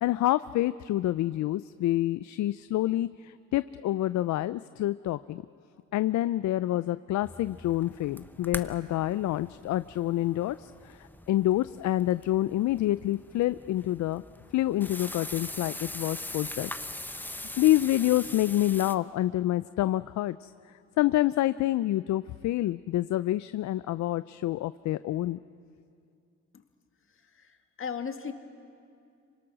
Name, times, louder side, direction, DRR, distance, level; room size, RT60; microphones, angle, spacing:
voice 1, 0.0-5.4 5.9-11.0 11.3-14.2 14.5-16.7 17.6-20.5 21.0-25.4, left 14 dB, 70° left, 15 dB, 0.5 m, -27 dB
sound 1, 7.2-18.9, left 1 dB, 5° left, 1.0 m, -42 dB
voice 2, 27.2-28.3, left 6 dB, 45° left, 7 dB, 1.9 m, -37 dB
27.0 x 25.0 x 6.3 m, 2.4 s
cardioid pair, 90°, 30 cm